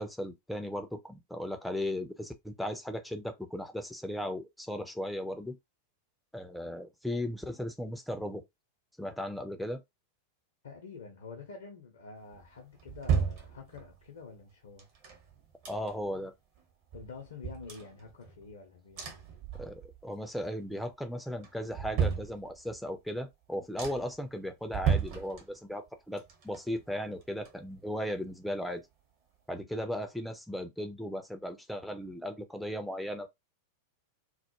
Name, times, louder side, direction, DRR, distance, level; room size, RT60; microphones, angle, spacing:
voice 1, 0.0-5.6 6.3-8.4 9.0-9.8 15.7-16.3 19.6-28.8 29.5-33.3, left 1 dB, ahead, 0.4 m, -36 dB
voice 2, 10.6-14.9 16.9-19.3, left 4 dB, 65° left, 0.6 m, -47 dB
sound 1, 12.3-14.1 14.8-16.2 16.6-16.7 16.9-18.5 18.9-20.1 20.4-20.9 21.4-22.9 23.3-23.4 23.8-24.2 24.7-25.9 26.2-28.0 28.3-28.4, right 7 dB, 45° right, 0.9 m, -34 dB
2.2 x 2.1 x 2.9 m
figure-of-eight pair, 90°, 0 cm